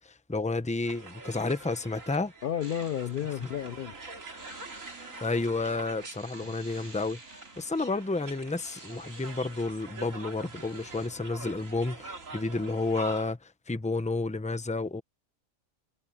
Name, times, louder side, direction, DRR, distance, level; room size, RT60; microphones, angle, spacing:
voice 1, 0.0-2.3 5.2-7.2 7.6-15.0, left 3 dB, 5° left, 0.7 m, -31 dB
sound 1, 0.8-13.3, right 3 dB, 90° right, 3.0 m, -45 dB
voice 2, 2.4-3.9, left 10 dB, 55° left, 0.6 m, -32 dB
sound 2, 2.6-11.1, right 2 dB, 65° right, 6.7 m, -52 dB
omnidirectional pair, 1.3 m